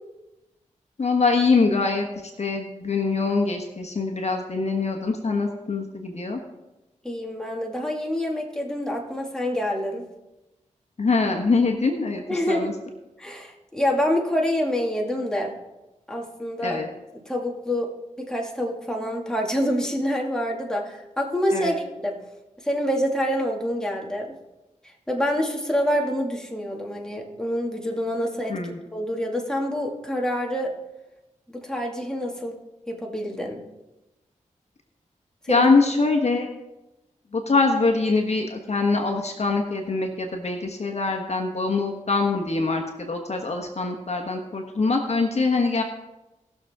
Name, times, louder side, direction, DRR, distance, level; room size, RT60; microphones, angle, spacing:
voice 1, 1.0-2.1 2.4-6.4 11.0-12.7 16.6-16.9 21.5-21.7 28.5-28.8 35.5-36.5 37.3-45.8, left 3 dB, 55° left, 3 dB, 1.3 m, -23 dB
voice 2, 7.0-10.0 12.3-12.7 13.2-15.5 16.1-16.8 17.1-17.9 18.2-22.2 22.6-24.3 24.8-28.6 28.9-30.7 31.5-32.6 32.9-33.6 35.4-35.7, equal, 5° left, -1 dB, 2.3 m, -26 dB
19.0 x 6.7 x 3.7 m, 1.0 s
cardioid pair, 60°, 13 cm